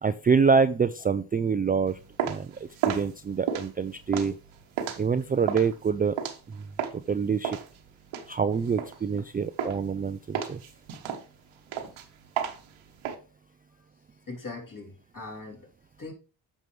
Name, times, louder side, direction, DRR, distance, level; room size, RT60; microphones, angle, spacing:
voice 1, 0.0-2.5 2.9-4.3 5.0-6.2 6.5-6.6 6.9-7.6 8.3-10.6, right 5 dB, 20° right, 0.3 m, -26 dB
sound 1, 1.9-7.1 7.4-9.3 9.6-10.0 10.3-13.1, right 8 dB, 85° right, 1.2 m, -33 dB
voice 2, 14.3-15.7 16.0-16.1, left 3 dB, 40° left, 3.2 m, -40 dB
9.0 x 6.2 x 3.2 m
cardioid pair, 65°, 47 cm